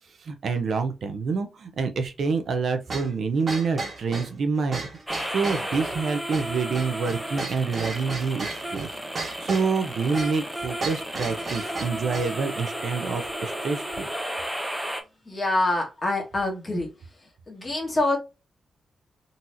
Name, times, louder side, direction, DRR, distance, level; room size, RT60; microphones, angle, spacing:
voice 1, 0.2-4.8 5.3-8.9 9.4-14.1, right 4 dB, 55° right, 0.6 m, -27 dB
sound 1, 2.9-12.4, right 3 dB, 35° right, 1.2 m, -35 dB
sound 2, 5.1-15.0, right 1 dB, 5° right, 0.6 m, -33 dB
voice 2, 15.2-16.9 17.5-18.2, left 2 dB, 20° left, 1.3 m, -25 dB
3.9 x 2.9 x 2.5 m
wide cardioid pair, 140°, 0 cm